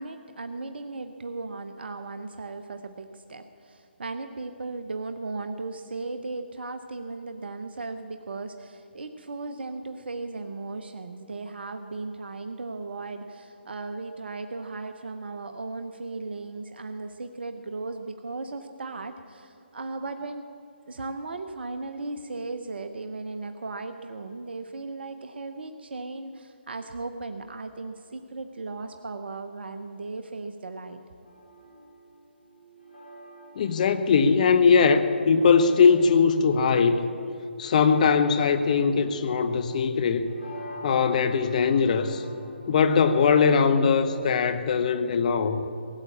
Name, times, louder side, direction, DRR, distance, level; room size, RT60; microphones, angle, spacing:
voice 1, 0.0-20.5 20.9-31.0, right 3 dB, 65° right, 8 dB, 0.9 m, -36 dB
sound 1, 31.2-44.1, right 1 dB, 90° left, 3.7 m, -45 dB
voice 2, 33.6-37.0 37.6-40.3 40.8-42.2 42.7-45.7, left 5 dB, 40° left, 10 dB, 0.7 m, -21 dB
17.5 x 8.3 x 8.5 m, 2.8 s
figure-of-eight pair, 145°, 6 cm